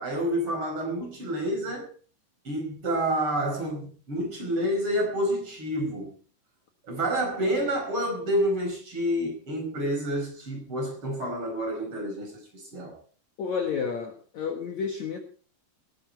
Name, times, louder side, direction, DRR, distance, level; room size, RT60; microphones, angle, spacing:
voice 1, 0.0-1.9 2.4-6.1 6.8-13.0, equal, 30° right, 5.7 m, -29 dB
voice 2, 13.4-15.2, left 6 dB, 55° left, 2.3 m, -30 dB
19.0 x 11.5 x 4.5 m
omnidirectional pair, 4.7 m